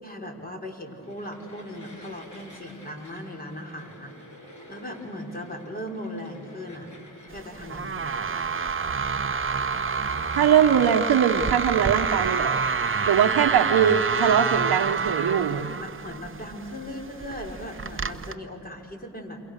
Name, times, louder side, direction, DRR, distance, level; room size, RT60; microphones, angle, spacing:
voice 1, 0.0-4.1 4.4-6.9 7.3-8.2 15.8-19.4, left 1 dB, 25° left, 2 dB, 5.3 m, -38 dB
sound 1, 1.0-18.3, left 1 dB, 50° left, 6.9 m, -49 dB
sound 2, 7.3-18.3, right 5 dB, 35° right, 1.1 m, -28 dB
voice 2, 10.4-12.6 13.1-15.8, right 8 dB, 65° right, 2 dB, 1.2 m, -21 dB
29.0 x 28.0 x 6.7 m, 2.7 s
cardioid pair, 60°, 38 cm